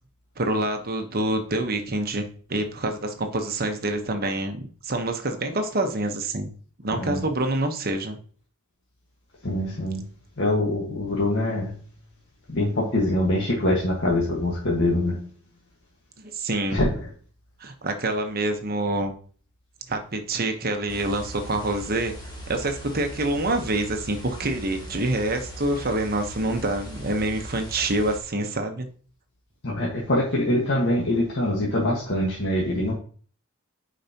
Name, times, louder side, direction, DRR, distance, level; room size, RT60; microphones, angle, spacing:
voice 1, 0.4-2.2 2.5-6.5 6.8-8.2 16.2-16.8 17.6-19.1 19.9-22.1 22.5-28.9, right 2 dB, 45° right, 5 dB, 1.1 m, -26 dB
voice 2, 6.9-7.3 9.4-10.0 10.4-11.7 12.5-15.2 16.7-17.1 29.6-32.9, left 1 dB, 55° left, -4 dB, 1.6 m, -24 dB
sound 1, 20.9-28.2, equal, 20° left, 1.8 m, -39 dB
8.6 x 5.1 x 2.9 m, 0.43 s
head